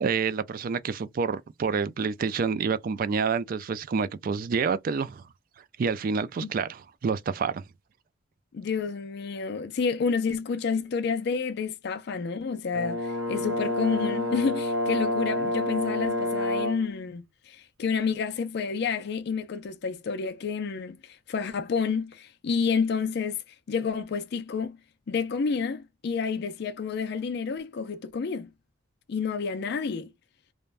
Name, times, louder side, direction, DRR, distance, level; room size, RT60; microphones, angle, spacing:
voice 1, 0.0-5.2 5.8-7.6, right 5 dB, 45° right, 0.3 m, -28 dB
voice 2, 8.5-23.4 23.7-24.8 25.1-28.5 29.1-30.1, left 5 dB, 55° left, 0.4 m, -29 dB
Brass instrument, 12.7-16.9, left 1 dB, 85° right, 0.6 m, -28 dB
3.2 x 2.1 x 2.4 m
head